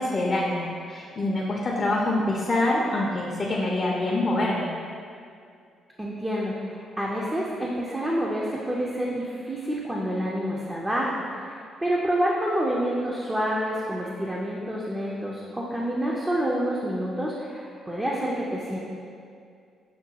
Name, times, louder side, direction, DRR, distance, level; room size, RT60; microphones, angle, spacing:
voice 1, 0.0-4.7, left 2 dB, 35° left, -3 dB, 0.5 m, -25 dB
voice 2, 6.0-18.8, equal, 15° right, -4 dB, 0.5 m, -28 dB
6.4 x 2.2 x 2.8 m, 2.3 s
cardioid pair, 90°, 0 cm